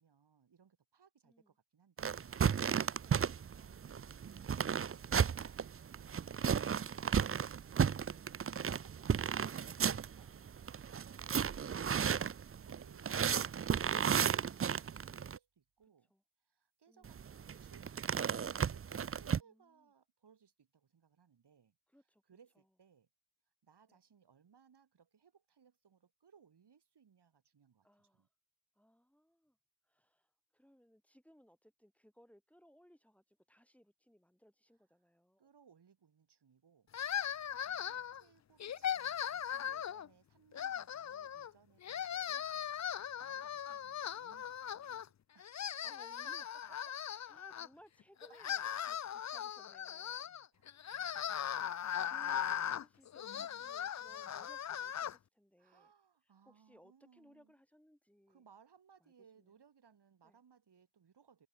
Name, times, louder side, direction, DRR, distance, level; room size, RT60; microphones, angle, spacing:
voice 1, 0.0-4.1 9.7-11.2 12.3-16.1 16.4-21.8 22.3-23.1 23.6-28.3 35.4-36.9 37.5-37.6 37.9-42.4 43.2-45.7 46.4-46.8 47.0-47.2 49.0-49.2 50.1-51.5 52.4-52.8 53.4-53.7 54.1-54.4 55.6-57.5 58.3-61.5, right 7 dB, 65° right, 4.6 m, -66 dB
voice 2, 1.2-1.5 3.0-3.3 10.2-10.5 12.5-12.8 16.1-16.2 16.9-17.2 19.4-19.9 21.9-22.2 23.9-24.0 27.8-28.3 28.7-29.6 29.8-35.5 37.6-38.1 43.4-43.5 45.8-46.5 47.3-50.3 50.6-55.9 56.4-58.4 59.0-59.5 60.2-60.4, equal, 5° left, 4.5 m, -65 dB
sound 1, 2.0-15.4 17.0-19.4, right 7 dB, 35° right, 0.4 m, -34 dB
sound 2, 36.9-38.2 38.6-40.1 40.5-41.5 41.8-45.1 45.4-47.7 48.2-55.2, left 9 dB, 40° left, 0.4 m, -39 dB
wide cardioid pair, 150°, 44 cm